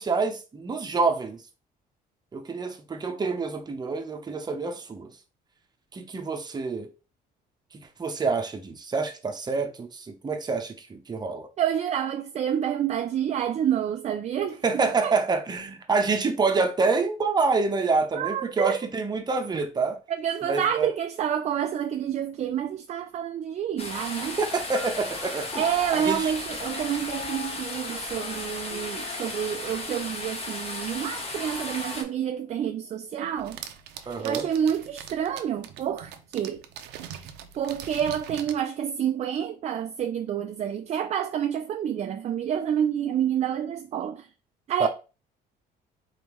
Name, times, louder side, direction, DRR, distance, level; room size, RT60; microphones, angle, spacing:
voice 1, 0.0-1.4 2.3-5.1 5.9-6.9 8.0-11.5 14.6-20.0 20.4-20.9 24.4-25.6 25.9-26.2 34.1-34.4 44.8-44.9, right 4 dB, 25° right, 0.8 m, -27 dB
voice 2, 11.6-15.1 18.1-18.8 20.1-24.4 25.6-33.6 34.0-36.6 37.1-44.3 44.7-44.9, right 9 dB, 40° right, 0.4 m, -28 dB
sound 1, 23.8-32.0, left 2 dB, 35° left, 1.3 m, -35 dB
sound 2, 23.9-32.7, left 7 dB, 90° left, 0.8 m, -46 dB
sound 3, 33.4-38.6, right 9 dB, 85° right, 0.6 m, -42 dB
4.0 x 3.5 x 3.0 m
cardioid pair, 110°, 17 cm